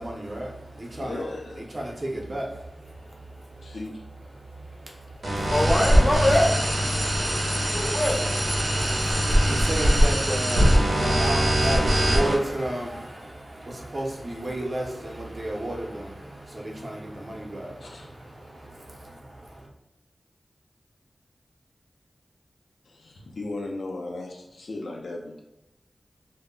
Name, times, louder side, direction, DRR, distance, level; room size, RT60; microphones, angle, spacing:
voice 1, 0.0-3.8 4.3-5.6 7.5-19.7, right 1 dB, 45° right, 0.6 m, -34 dB
voice 2, 1.0-1.7 3.6-4.0 17.8-18.1 22.8-25.4, left 2 dB, 85° left, 0.4 m, -36 dB
sound 1, 5.2-12.3, equal, 85° right, 0.6 m, -22 dB
voice 3, 5.3-9.5, left 1 dB, 25° left, 0.5 m, -26 dB
2.1 x 2.0 x 3.6 m
wide cardioid pair, 70°, 0 cm